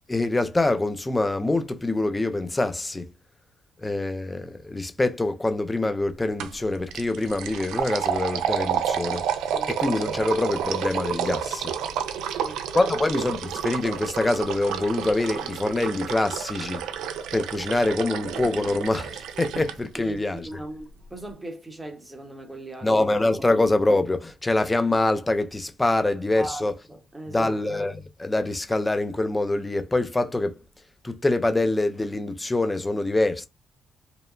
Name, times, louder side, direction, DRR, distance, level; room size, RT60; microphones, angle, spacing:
voice 1, 0.1-3.1 3.8-9.2 9.7-11.7 12.7-16.9 17.3-20.5 22.8-26.7 27.3-30.6 31.0-33.5, left 2 dB, 15° left, 0.4 m, -25 dB
sound 1, 6.4-6.6 6.9-19.7, right 8 dB, 90° right, 0.4 m, -30 dB
voice 2, 12.1-13.0 20.0-22.9 26.3-27.6, right 1 dB, 10° right, 0.9 m, -39 dB
2.7 x 2.1 x 2.5 m
cardioid pair, 90°, 0 cm